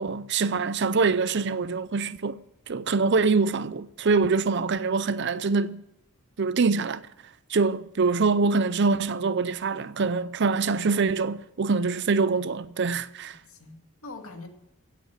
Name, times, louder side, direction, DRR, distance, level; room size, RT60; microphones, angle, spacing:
voice 1, 0.0-2.4 2.7-5.8 6.4-7.0 7.5-13.4, right 4 dB, 50° right, 0.6 m, -24 dB
voice 2, 13.3-14.5, left 3 dB, 75° left, 2.3 m, -44 dB
16.0 x 8.5 x 7.9 m
head